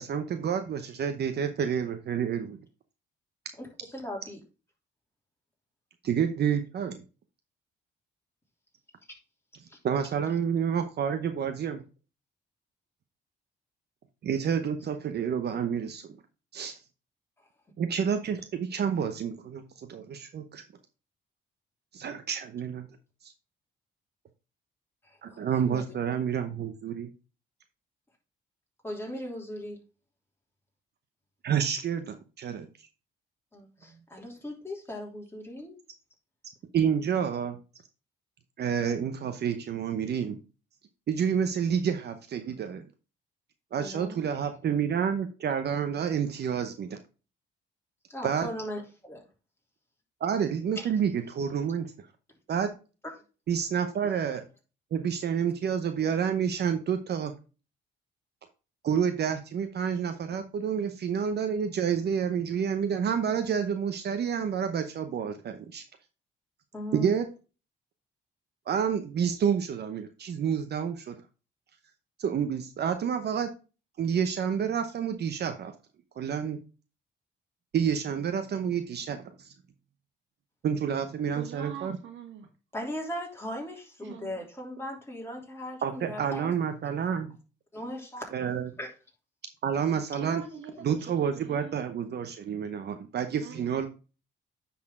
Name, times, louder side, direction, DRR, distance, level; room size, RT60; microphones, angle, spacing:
voice 1, 0.0-2.6 6.0-7.0 9.8-11.8 14.2-16.1 16.5-16.8 17.8-20.6 21.9-22.9 23.2-23.3 25.2-27.1 31.4-32.7 36.7-37.6 38.6-40.4 41.1-42.8 43.7-47.0 48.2-48.5 50.2-51.9 52.5-52.7 53.5-54.4 54.9-57.3 58.8-65.8 66.9-67.2 68.7-71.1 72.2-73.5 74.0-75.7 76.2-76.6 77.7-79.5 80.6-82.0 85.8-87.3 88.3-88.7 89.6-90.4 90.8-93.9, right 7 dB, 55° right, 8 dB, 0.8 m, -29 dB
voice 2, 3.6-4.4 9.7-9.8 25.0-25.8 28.8-29.8 33.5-35.7 43.8-44.2 48.1-49.2 50.8-50.9 66.7-67.1 82.7-86.6 87.7-88.3 88.8-88.9, left 1 dB, 10° left, 0 dB, 3.2 m, -38 dB
voice 3, 81.3-82.5 84.0-84.5 90.1-91.8 93.4-93.9, right 7 dB, 70° right, 5 dB, 1.7 m, -43 dB
9.7 x 4.3 x 3.7 m, 0.33 s
cardioid pair, 90°, 20 cm